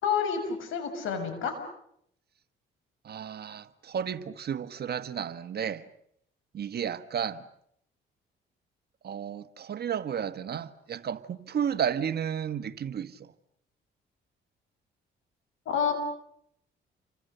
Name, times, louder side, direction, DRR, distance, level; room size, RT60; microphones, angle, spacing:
voice 1, 0.0-1.6 15.7-15.9, left 7 dB, 85° left, 6.4 m, -29 dB
voice 2, 3.0-5.9 6.5-7.4 9.0-13.3, right 8 dB, 55° right, 1.4 m, -32 dB
29.5 x 25.0 x 6.8 m
cardioid pair, 90°, 20 cm